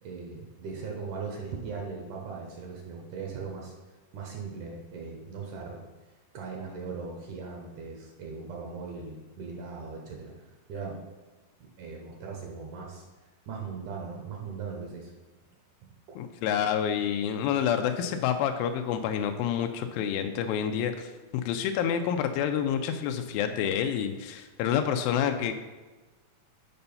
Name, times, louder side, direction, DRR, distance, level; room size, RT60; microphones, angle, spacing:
voice 1, 0.0-3.7 4.1-5.8 6.3-10.3 10.7-11.0 11.6-13.0 13.5-15.1 16.1-16.2, right 5 dB, 70° right, 0 dB, 2.2 m, -39 dB
voice 2, 16.2-21.1 21.4-25.5, left 8 dB, 80° left, 6 dB, 2.3 m, -28 dB
6.9 x 5.5 x 5.5 m, 1.2 s
omnidirectional pair, 4.2 m